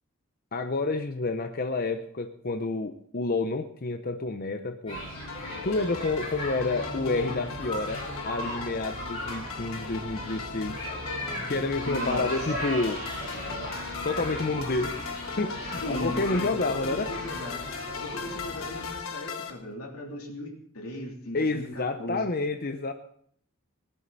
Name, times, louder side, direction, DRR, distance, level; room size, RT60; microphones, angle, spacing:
voice 1, 0.5-5.0 5.6-10.8 11.5-13.0 14.0-15.0 15.4-17.1 21.3-22.9, left 3 dB, 45° left, 7 dB, 0.7 m, -29 dB
sound 1, 4.9-18.9, left 1 dB, 25° left, 7.5 m, -37 dB
sound 2, 5.3-19.5, left 6 dB, 70° left, 1.5 m, -39 dB
sound 3, 10.0-19.7, equal, 10° left, 1.7 m, -53 dB
voice 2, 11.9-12.5 15.8-17.6 18.0-22.2, left 1 dB, 90° left, 1 dB, 3.1 m, -37 dB
18.5 x 11.5 x 4.0 m, 0.64 s
head